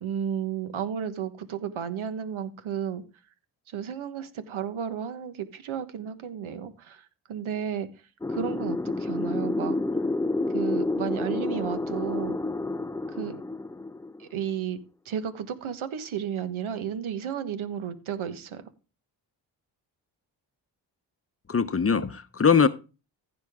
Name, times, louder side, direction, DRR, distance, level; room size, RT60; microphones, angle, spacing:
voice 1, 0.0-3.0 3.7-7.0 7.3-7.9 8.3-9.8 10.5-12.4 13.1-13.4 14.2-14.8 15.0-18.6, right 8 dB, 75° right, 10 dB, 1.4 m, -33 dB
sound 1, 8.2-14.4, left 2 dB, 5° left, 0.4 m, -29 dB
voice 2, 21.5-22.7, left 6 dB, 30° left, 13 dB, 0.8 m, -21 dB
15.0 x 5.3 x 3.6 m, 0.32 s
supercardioid pair, 55°, 48 cm